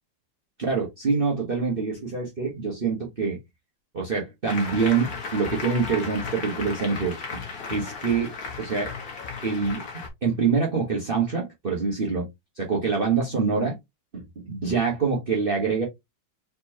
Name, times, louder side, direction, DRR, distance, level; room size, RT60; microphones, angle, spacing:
voice 1, 0.6-3.4 3.9-7.4 7.7-8.3 8.6-8.9 9.4-12.3 12.6-13.8 14.1-15.8, right 5 dB, 35° right, 1.2 m, -25 dB
Applause, 4.5-10.1, left 5 dB, 55° left, 1.8 m, -35 dB
4.3 x 4.2 x 2.8 m
omnidirectional pair, 2.0 m